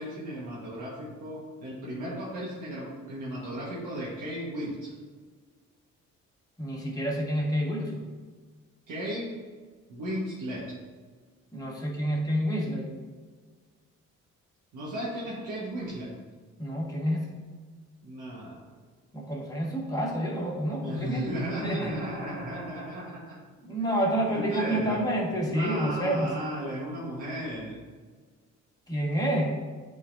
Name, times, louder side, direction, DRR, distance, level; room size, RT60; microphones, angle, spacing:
voice 1, 0.0-5.0 8.9-9.3 9.9-10.7 14.7-16.1 18.0-18.7 20.8-23.4 24.3-25.0 25.5-27.8, equal, 80° right, -7 dB, 1.4 m, -35 dB
voice 2, 6.6-8.0 11.5-12.9 16.6-17.4 19.1-21.3 21.6-22.0 23.6-26.3 28.9-29.5, equal, 10° left, -3 dB, 1.7 m, -28 dB
8.8 x 4.1 x 2.6 m, 1.5 s
cardioid pair, 90°, 30 cm